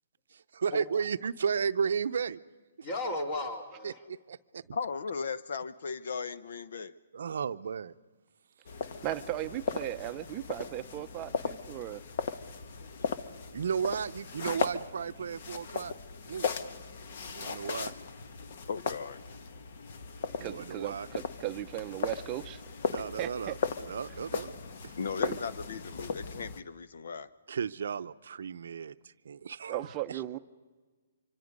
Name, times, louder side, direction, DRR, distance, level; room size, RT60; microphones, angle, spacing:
voice 1, 0.3-2.4 2.8-2.9 3.8-3.9 4.3-4.8 7.1-7.9 13.5-15.9 16.3-16.5 17.3-17.9 20.4-21.1 22.9-23.6 23.9-24.5 24.8-25.0 27.5-28.9 29.2-30.2, right 6 dB, 70° right, 13 dB, 0.6 m, -34 dB
voice 2, 2.8-4.0, left 2 dB, 35° left, 5 dB, 2.9 m, -35 dB
voice 3, 4.7-6.9 12.8-13.1 16.5-16.6 18.4-19.2 25.0-27.3, left 5 dB, 70° left, 14 dB, 0.8 m, -37 dB
sound 1, 8.6-26.6, left 6 dB, 55° left, 1.2 m, -37 dB
voice 4, 9.0-12.0 20.4-22.6 23.2-23.6 25.2-25.4 29.7-30.4, right 14 dB, 25° right, 9 dB, 0.6 m, -37 dB
25.5 x 24.5 x 5.3 m, 1.4 s
hypercardioid pair, 155°, 0 cm